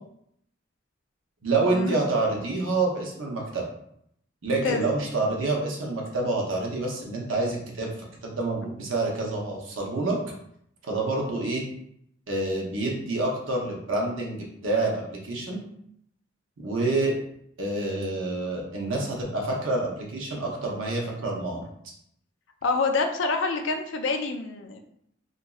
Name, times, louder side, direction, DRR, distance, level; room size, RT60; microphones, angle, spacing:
voice 1, 1.4-3.7 4.4-7.9 8.2-10.2 10.8-11.6 12.3-15.6 16.6-17.1 17.6-21.6, right 2 dB, 85° right, -1 dB, 0.7 m, -27 dB
voice 2, 4.5-4.8 22.6-24.8, left 3 dB, 70° left, 5 dB, 0.4 m, -27 dB
2.9 x 2.4 x 2.3 m, 0.72 s
head